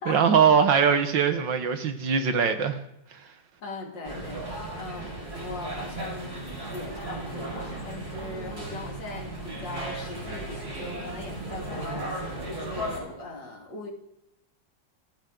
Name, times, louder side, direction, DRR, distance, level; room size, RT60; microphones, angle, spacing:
voice 1, 0.1-2.8, right 6 dB, 75° right, 8 dB, 1.9 m, -21 dB
voice 2, 3.6-5.1 5.4-13.9, left 2 dB, 70° left, 2 dB, 3.1 m, -40 dB
sound 1, 4.0-13.0, right 1 dB, 55° right, 6.5 m, -36 dB
28.5 x 11.5 x 3.9 m, 0.82 s
omnidirectional pair, 2.0 m